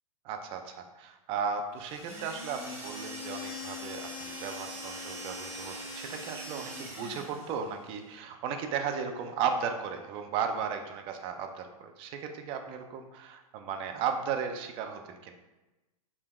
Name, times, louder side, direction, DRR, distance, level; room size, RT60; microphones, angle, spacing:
voice 1, 0.2-15.3, right 6 dB, 30° right, 5 dB, 0.4 m, -35 dB
sound 1, 1.8-7.6, left 1 dB, 15° right, 0.9 m, -41 dB
5.1 x 3.3 x 2.3 m, 1.1 s
hypercardioid pair, 110°, 19 cm